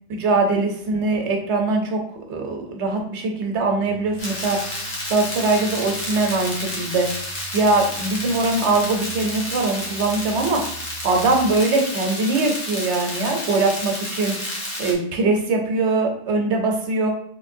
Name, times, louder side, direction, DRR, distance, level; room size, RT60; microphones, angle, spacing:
voice 1, 0.1-2.0 2.3-4.6 5.1-7.1 7.5-10.6 11.0-14.5 14.8-17.1, right 3 dB, 75° right, 2 dB, 1.0 m, -22 dB
sound 1, 3.8-11.6, right 1 dB, 85° left, 1.9 m, -43 dB
sound 2, 4.2-14.9, left 1 dB, 50° left, 1.1 m, -31 dB
3.3 x 3.2 x 2.6 m, 0.65 s
omnidirectional pair, 1.2 m